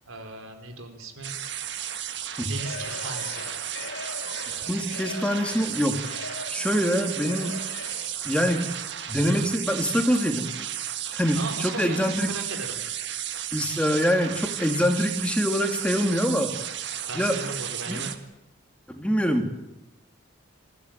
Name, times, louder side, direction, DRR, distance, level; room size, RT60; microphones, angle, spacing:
voice 1, 0.1-1.3 2.4-3.5 11.3-12.8 17.1-18.1, right 3 dB, 85° right, 4 dB, 4.2 m, -37 dB
sound 1, 1.2-18.2, right 10 dB, 55° right, 1.7 m, -34 dB
Singing / Crowd, 2.5-8.2, left 3 dB, 70° left, 3.6 m, -40 dB
voice 2, 4.7-6.0 6.5-7.6 8.2-8.7 9.1-10.7 11.1-12.3 13.5-16.5 17.1-17.4 17.9-18.0 18.9-19.5, equal, 5° left, 4 dB, 2.0 m, -25 dB
26.5 x 15.5 x 9.1 m, 0.95 s
head